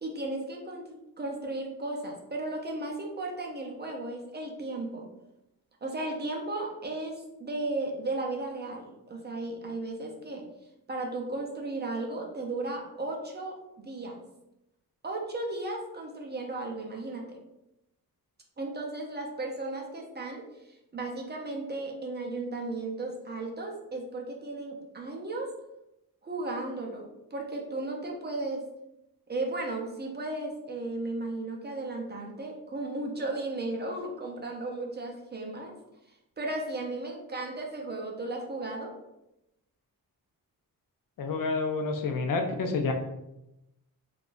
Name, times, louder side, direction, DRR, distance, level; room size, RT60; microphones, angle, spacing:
voice 1, 0.0-5.0 5.8-10.4 10.9-14.1 15.0-17.4 18.6-25.5 26.2-28.6 29.3-35.8 36.1-38.9, right 2 dB, 25° right, 0 dB, 0.5 m, -35 dB
voice 2, 41.2-42.9, left 3 dB, 60° left, 4 dB, 0.5 m, -29 dB
3.6 x 2.3 x 2.5 m, 0.89 s
wide cardioid pair, 125°, 38 cm